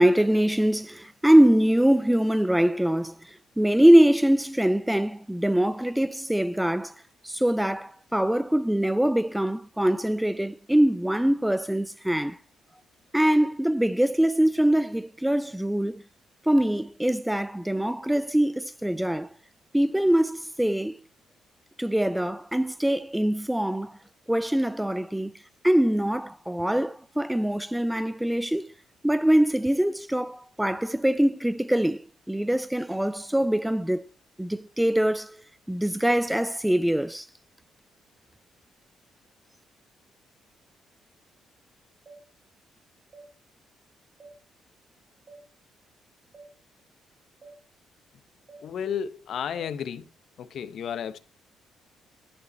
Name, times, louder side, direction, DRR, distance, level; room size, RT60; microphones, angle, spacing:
voice 1, 0.0-3.2 3.6-6.9 7.2-12.4 13.1-16.0 16.5-19.3 19.7-21.0 21.8-24.0 24.3-25.3 25.6-28.7 29.0-34.0 34.4-35.4 35.7-37.3, right 1 dB, 5° right, 0.4 m, -23 dB
sound 1, 42.1-42.2 43.1-43.3 44.2-44.4 45.3-45.4 46.3-46.5 47.4-47.6 48.5-48.6 49.6-49.7, right 3 dB, 40° right, 2.6 m, -48 dB
voice 2, 48.6-50.0 50.4-51.2, left 8 dB, 65° left, 0.8 m, -32 dB
11.0 x 5.0 x 4.2 m
cardioid pair, 90°, 0 cm